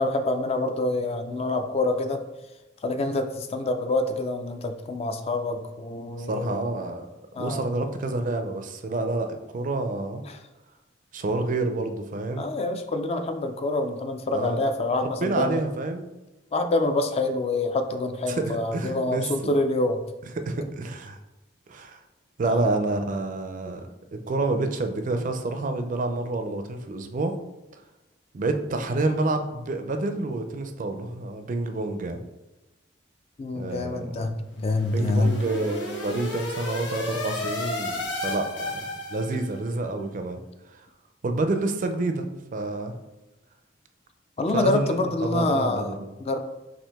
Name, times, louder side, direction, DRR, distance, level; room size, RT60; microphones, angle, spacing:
voice 1, 0.0-2.2 2.8-6.5 7.3-7.6 10.3-10.4 12.4-15.6 16.5-20.0 22.5-22.6 33.4-35.4 44.4-45.9 46.2-46.4, left 2 dB, 35° left, 7 dB, 0.4 m, -26 dB
voice 2, 6.2-7.1 7.3-10.2 11.1-12.5 14.3-14.6 15.2-16.1 18.3-19.5 20.4-21.2 21.7-22.0 22.4-27.4 27.7-27.8 28.3-32.2 33.5-34.4 34.9-38.8 39.1-40.4 40.7-40.8 41.2-42.9 44.5-46.1, right 2 dB, 45° right, 7 dB, 0.4 m, -28 dB
sound 1, 34.5-39.6, left 2 dB, 70° left, 1.0 m, -33 dB
5.9 x 2.6 x 3.4 m, 1.1 s
head